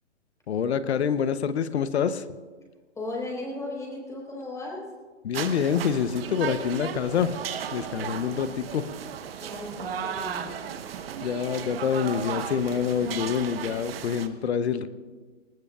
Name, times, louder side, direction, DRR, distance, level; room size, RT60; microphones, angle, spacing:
voice 1, 0.5-2.2 5.2-8.9 11.2-14.9, left 7 dB, 60° left, 13 dB, 1.0 m, -26 dB
voice 2, 2.9-4.9 9.4-10.7 12.9-13.1, left 2 dB, 10° left, -2 dB, 4.5 m, -36 dB
sound 1, 5.3-14.3, right 8 dB, 50° right, 1.2 m, -35 dB
20.0 x 20.0 x 2.5 m, 1.4 s
hypercardioid pair, 135°, 37 cm